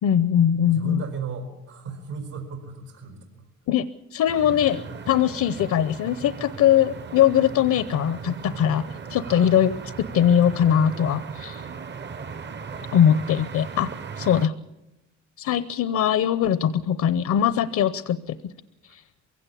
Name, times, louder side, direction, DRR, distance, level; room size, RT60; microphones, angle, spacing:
voice 1, 0.0-1.0 3.7-8.8 9.1-9.7 10.1-11.6 12.9-13.9 14.2-14.5 15.4-18.4 18.9-19.0, left 9 dB, 70° left, 14 dB, 0.9 m, -21 dB
voice 2, 0.6-3.4 9.2-9.6, right 4 dB, 80° right, 4 dB, 5.0 m, -35 dB
sound 1, 4.3-14.5, right 5 dB, 35° right, 0.9 m, -37 dB
23.0 x 16.5 x 8.4 m, 0.95 s
cardioid pair, 90°, 30 cm